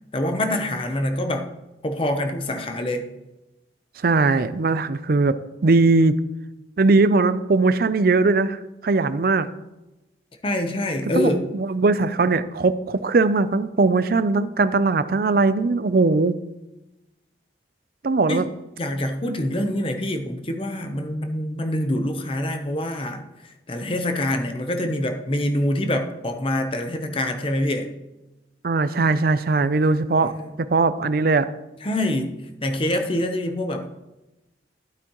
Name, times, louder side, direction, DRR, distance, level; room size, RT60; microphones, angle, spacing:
voice 1, 0.1-1.5 1.8-3.1 10.4-11.5 18.3-18.5 18.8-23.2 23.7-27.9 30.2-30.6 31.8-33.9, left 1 dB, 30° left, 6 dB, 0.7 m, -25 dB
voice 2, 4.0-5.4 5.6-6.2 6.8-9.5 11.1-16.4 18.0-18.5 28.6-31.5, right 3 dB, 50° right, 13 dB, 0.4 m, -20 dB
12.0 x 8.3 x 3.0 m, 1.0 s
head